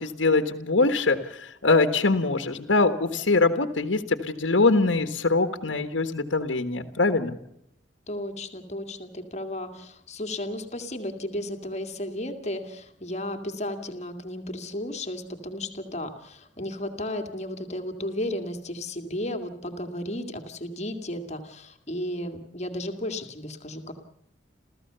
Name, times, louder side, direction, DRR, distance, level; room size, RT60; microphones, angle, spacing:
voice 1, 0.0-7.4, left 3 dB, 85° left, 8 dB, 1.5 m, -23 dB
voice 2, 8.1-23.9, left 1 dB, 40° left, 6 dB, 2.3 m, -34 dB
29.5 x 14.5 x 6.9 m, 0.77 s
head